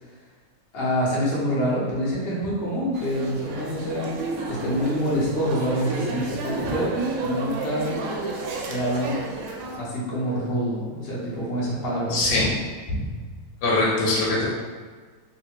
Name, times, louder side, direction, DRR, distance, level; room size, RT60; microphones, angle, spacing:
voice 1, 0.7-4.2 4.5-8.0 8.5-9.2 9.8-12.2, equal, 50° left, -7 dB, 0.7 m, -26 dB
sound 1, 2.9-9.8, right 3 dB, 75° right, 1.3 m, -31 dB
voice 2, 12.1-12.5 12.9-13.0 13.6-14.5, left 2 dB, 70° left, -5 dB, 1.3 m, -22 dB
3.3 x 2.7 x 2.9 m, 1.5 s
omnidirectional pair, 2.4 m